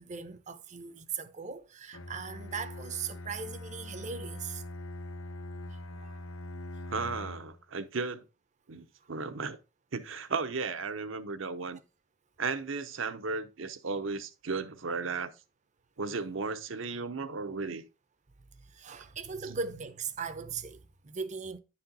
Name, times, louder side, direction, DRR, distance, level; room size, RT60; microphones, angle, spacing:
voice 1, 0.0-4.6 5.9-6.2 18.6-21.6, right 5 dB, 35° right, 0.6 m, -39 dB
Bowed string instrument, 1.9-7.6, left 1 dB, 85° left, 0.9 m, -42 dB
voice 2, 6.9-8.2 8.7-9.6 9.9-11.8 12.4-15.3 16.0-17.8, right 4 dB, 65° right, 0.8 m, -35 dB
10.5 x 4.3 x 3.9 m
head